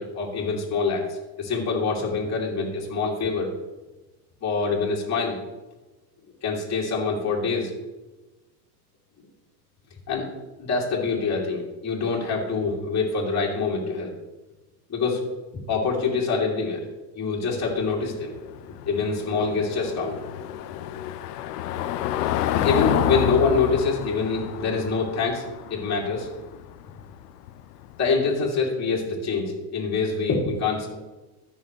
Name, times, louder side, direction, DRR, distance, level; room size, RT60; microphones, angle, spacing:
voice 1, 0.0-3.5 4.4-5.4 6.4-7.7 10.1-10.3 10.6-14.1 14.9-15.2 15.7-16.9 17.2-18.3 18.7-20.2 22.5-25.4 25.7-26.3 28.0-31.0, left 4 dB, 35° left, -4 dB, 2.9 m, -25 dB
Car passing by / Engine, 17.5-28.2, left 11 dB, 90° left, 0.7 m, -29 dB
15.0 x 6.2 x 3.2 m, 1.1 s
hypercardioid pair, 80°, 46 cm